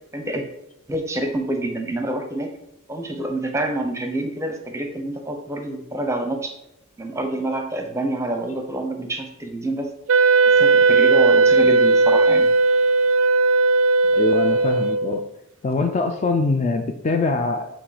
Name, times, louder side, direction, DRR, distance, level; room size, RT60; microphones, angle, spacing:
voice 1, 0.1-0.4 0.9-2.5 2.9-6.5 7.0-9.9 10.4-12.5, right 1 dB, 15° right, 4 dB, 0.6 m, -27 dB
Wind instrument woodwind instrument, 10.1-15.3, right 3 dB, 60° right, 0.4 m, -16 dB
voice 2, 14.1-15.3 15.6-17.8, left 3 dB, 30° left, 6 dB, 0.3 m, -23 dB
7.2 x 2.9 x 4.9 m, 0.82 s
head